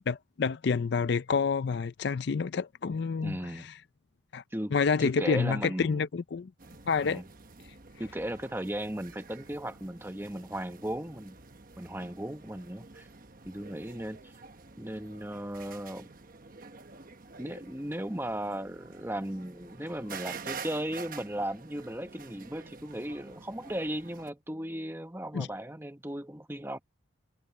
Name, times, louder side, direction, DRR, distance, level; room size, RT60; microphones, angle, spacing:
voice 1, 0.1-3.7 4.3-4.4 4.7-6.5 6.9-7.2 25.3-25.5, left 5 dB, 55° left, 0.4 m, -28 dB
voice 2, 3.2-3.7 4.5-4.7 5.0-6.0 7.0-7.2 8.0-11.4 11.8-13.1 13.4-14.3 14.8-16.1 17.4-26.8, right 1 dB, 10° right, 1.1 m, -36 dB
sound 1, 6.6-24.3, right 5 dB, 45° right, 1.2 m, -48 dB
head